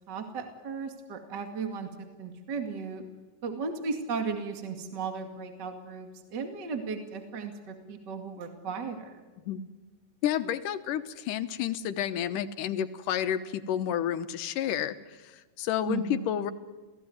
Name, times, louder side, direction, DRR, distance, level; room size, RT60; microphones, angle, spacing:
voice 1, 0.1-3.0 3.4-9.2 15.9-16.3, right 5 dB, 35° right, 5 dB, 2.5 m, -36 dB
voice 2, 10.2-15.0 15.2-16.5, left 10 dB, 80° left, 11 dB, 2.7 m, -30 dB
29.5 x 18.0 x 9.5 m, 1.3 s
omnidirectional pair, 3.7 m